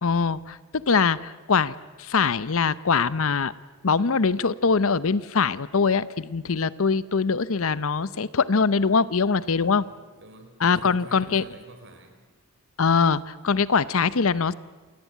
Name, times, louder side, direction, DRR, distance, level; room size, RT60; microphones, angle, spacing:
voice 1, 0.0-3.5 3.8-9.8 10.6-11.4 12.8-14.5, left 5 dB, 65° left, 17 dB, 0.7 m, -23 dB
voice 2, 9.6-12.2, right 1 dB, 55° right, 6 dB, 4.6 m, -48 dB
27.5 x 18.0 x 9.3 m, 1.3 s
head